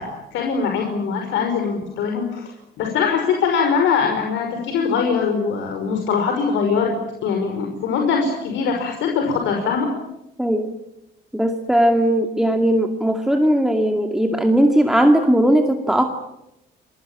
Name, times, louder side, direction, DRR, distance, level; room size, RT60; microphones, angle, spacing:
voice 1, 0.3-2.5 2.8-6.9 7.2-9.9, left 6 dB, 75° left, 3 dB, 5.7 m, -22 dB
voice 2, 10.4-10.7 11.3-16.1, right 1 dB, ahead, 4 dB, 2.2 m, -18 dB
28.5 x 22.0 x 8.9 m, 0.86 s
cardioid pair, 140°, 19 cm